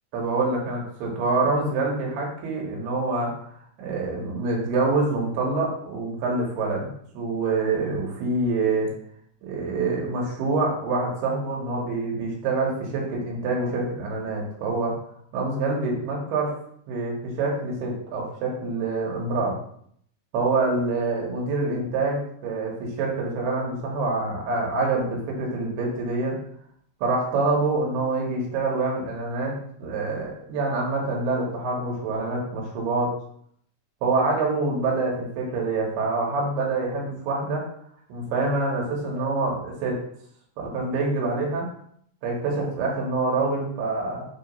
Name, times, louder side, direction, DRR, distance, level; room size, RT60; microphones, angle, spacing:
voice 1, 0.1-3.3 3.8-8.9 9.4-15.0 15.3-16.5 16.9-19.6 20.3-26.4 27.0-29.5 29.8-33.2 34.0-37.6 38.1-40.0 40.6-41.7 42.2-44.3, right 3 dB, 90° right, -2 dB, 3.3 m, -26 dB
6.3 x 2.9 x 5.3 m, 0.66 s
omnidirectional pair, 4.5 m